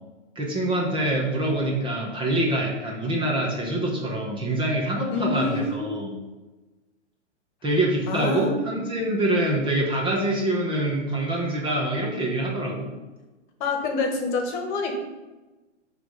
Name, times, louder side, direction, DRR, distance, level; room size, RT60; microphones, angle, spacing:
voice 1, 0.3-6.1 7.6-12.9, right 1 dB, 15° right, -1 dB, 1.0 m, -25 dB
voice 2, 5.1-6.0 8.1-8.7 13.6-14.9, left 3 dB, 40° left, 3 dB, 1.4 m, -27 dB
7.4 x 3.3 x 5.1 m, 1.1 s
hypercardioid pair, 135°, 35 cm